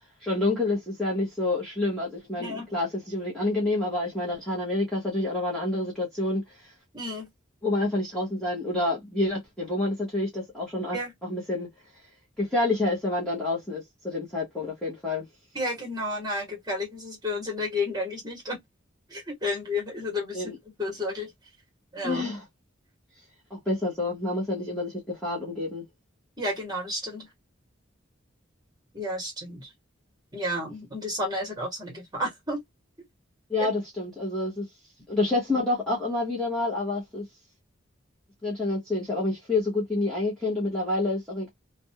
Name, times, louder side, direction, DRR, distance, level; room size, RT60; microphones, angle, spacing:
voice 1, 0.2-6.7 7.6-11.7 12.4-15.3 20.3-20.6 22.0-22.4 23.5-25.8 33.5-34.6 35.1-37.2 38.4-41.5, left 2 dB, 5° left, 0.9 m, -28 dB
voice 2, 2.4-2.7 6.9-7.3 10.9-11.1 15.5-18.6 19.1-20.5 20.8-21.3 21.9-22.2 26.4-27.3 28.9-29.7 30.3-32.6 33.6-33.7, left 1 dB, 20° right, 1.2 m, -31 dB
2.5 x 2.2 x 2.7 m
head